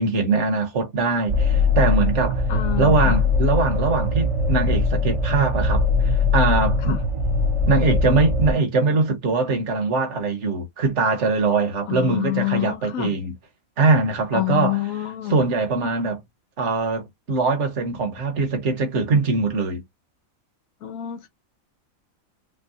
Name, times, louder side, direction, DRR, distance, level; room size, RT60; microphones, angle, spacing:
voice 1, 0.0-2.4 2.8-7.0 7.7-13.3 13.8-14.8 15.3-16.2 16.6-17.0 17.3-19.8, right 3 dB, 60° right, 1.6 m, -22 dB
sound 1, 1.3-8.5, left 3 dB, 30° right, 0.6 m, -21 dB
voice 2, 2.5-3.2 6.8-7.0 11.9-13.1 14.3-15.5 20.8-21.3, left 15 dB, 80° left, 1.2 m, -27 dB
6.0 x 2.2 x 2.8 m
omnidirectional pair, 1.4 m